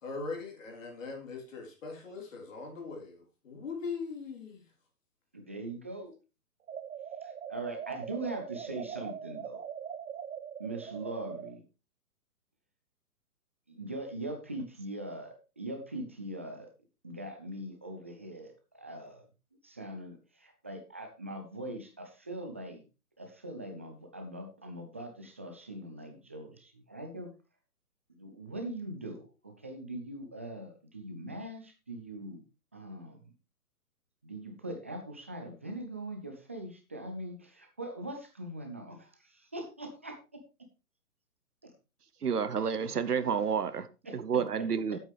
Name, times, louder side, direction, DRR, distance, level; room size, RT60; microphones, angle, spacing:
voice 1, 0.0-4.6, left 4 dB, 55° left, 3.8 m, -40 dB
voice 2, 5.3-6.1 7.2-9.6 10.6-11.6 13.7-16.7 17.0-19.2 19.6-22.8 23.2-27.3 28.2-32.4 32.7-33.3 34.2-40.2 41.6-41.7 44.1-44.2, right 1 dB, 10° right, 0.4 m, -41 dB
sound 1, 6.7-11.6, right 8 dB, 60° right, 1.1 m, -41 dB
voice 3, 42.2-43.9 44.1-45.0, right 6 dB, 85° right, 1.0 m, -30 dB
12.0 x 8.3 x 3.4 m
figure-of-eight pair, 135°, 45 cm